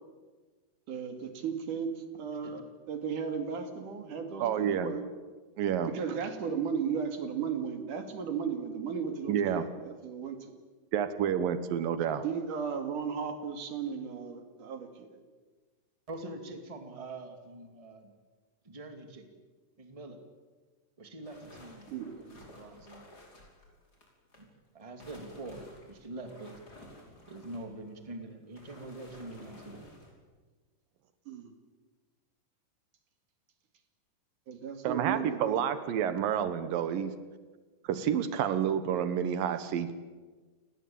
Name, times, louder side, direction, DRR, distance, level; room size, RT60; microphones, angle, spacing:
voice 1, 0.9-5.0 5.9-10.5 12.2-15.2 21.9-22.1 31.3-31.5 34.5-35.6, right 6 dB, 65° right, 7 dB, 3.8 m, -35 dB
voice 2, 4.4-4.9 5.6-5.9 9.3-9.7 10.9-12.2 34.8-37.1 37.9-39.9, right 9 dB, 85° right, 12 dB, 2.9 m, -29 dB
voice 3, 16.1-18.1 18.6-19.2 19.8-20.2 21.0-21.9 22.2-23.0 24.4-24.5 24.7-26.6 27.3-29.9, right 2 dB, 10° right, 6 dB, 2.1 m, -44 dB
sound 1, 21.2-24.4 24.8-30.1, left 1 dB, 25° left, 5.7 m, -53 dB
30.0 x 19.0 x 8.8 m, 1.4 s
omnidirectional pair, 3.9 m